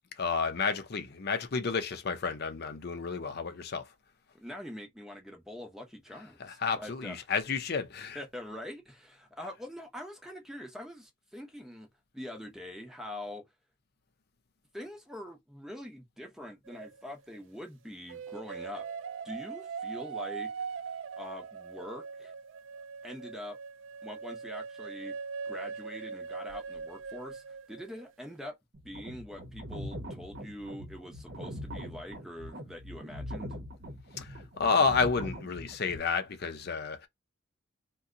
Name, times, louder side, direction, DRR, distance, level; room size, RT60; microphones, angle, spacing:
voice 1, 0.1-3.9 6.1-8.2 9.4-9.5 34.1-37.1, left 5 dB, 55° left, 0.6 m, -31 dB
voice 2, 4.3-7.2 8.1-11.9 12.1-13.4 14.7-18.8 19.2-20.5 21.2-22.3 23.0-23.6 24.0-25.1 25.4-28.5 28.8-33.6, left 1 dB, ahead, 0.8 m, -44 dB
sound 1, 16.7-17.4 18.1-28.1, right 5 dB, 70° right, 0.3 m, -41 dB
sound 2, 28.7-36.0, equal, 50° right, 0.9 m, -42 dB
2.7 x 2.2 x 3.7 m
head